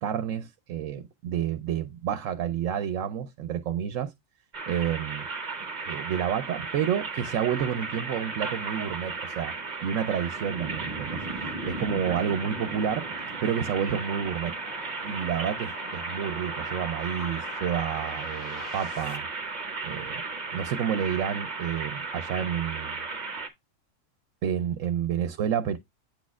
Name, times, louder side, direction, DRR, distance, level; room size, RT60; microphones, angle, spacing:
voice 1, 0.0-4.1 4.7-5.3 5.9-9.5 9.8-11.2 11.6-13.1 13.4-14.5 15.0-19.3 19.8-20.2 20.5-23.0 24.4-25.8, right 9 dB, 85° right, 1.0 m, -29 dB
sound 1, 4.5-23.5, right 4 dB, 35° right, 1.1 m, -35 dB
sound 2, 10.9-19.2, left 5 dB, 60° left, 1.2 m, -45 dB
8.6 x 6.2 x 2.3 m
omnidirectional pair, 1.3 m